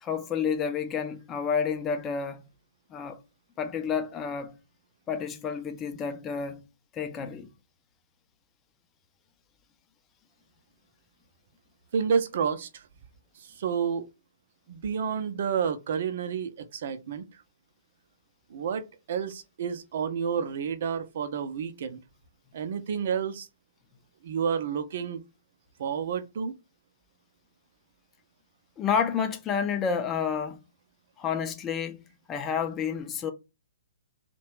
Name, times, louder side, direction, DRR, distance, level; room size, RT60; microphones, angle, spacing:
voice 1, 0.0-2.4 2.9-3.2 3.6-4.5 5.1-6.6 6.9-7.5 28.8-30.6 31.2-33.3, left 6 dB, 20° left, 0.5 m, -30 dB
voice 2, 11.9-12.8 13.4-14.0 14.7-17.4 18.5-22.0 22.5-23.5 24.2-25.2 25.8-26.5, right 7 dB, 55° right, 0.5 m, -30 dB
2.7 x 2.2 x 3.1 m
figure-of-eight pair, 125°, 0 cm